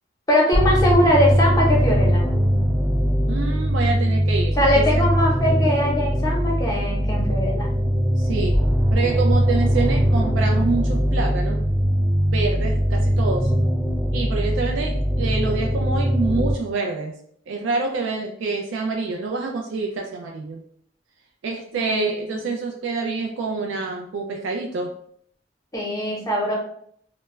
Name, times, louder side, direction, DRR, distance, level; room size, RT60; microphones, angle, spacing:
voice 1, 0.3-2.2 4.6-7.7 21.7-22.0 25.7-26.5, left 1 dB, 20° left, -2 dB, 0.7 m, -21 dB
sound 1, 0.5-16.5, equal, 10° right, 0.3 m, -21 dB
voice 2, 3.3-5.1 8.2-8.6 8.9-11.6 12.3-13.5 14.1-17.1 17.5-20.6 21.4-24.9, right 4 dB, 90° right, 1 dB, 0.3 m, -27 dB
2.2 x 2.0 x 3.1 m, 0.65 s
head